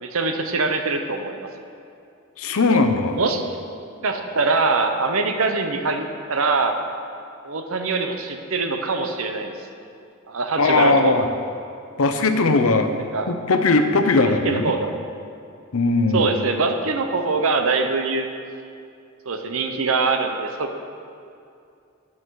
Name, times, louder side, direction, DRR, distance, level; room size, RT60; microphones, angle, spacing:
voice 1, 0.0-1.5 2.7-2.8 3.1-3.4 4.0-6.8 7.4-9.5 10.3-11.3 13.1-13.3 14.2-14.9 16.1-18.3 19.3-20.7, right 3 dB, 70° right, 5 dB, 0.8 m, -23 dB
voice 2, 2.4-3.2 10.6-11.3 12.0-12.9 13.3-14.6 15.7-16.3, left 3 dB, 75° left, 7 dB, 0.7 m, -19 dB
10.5 x 6.0 x 4.7 m, 2.5 s
head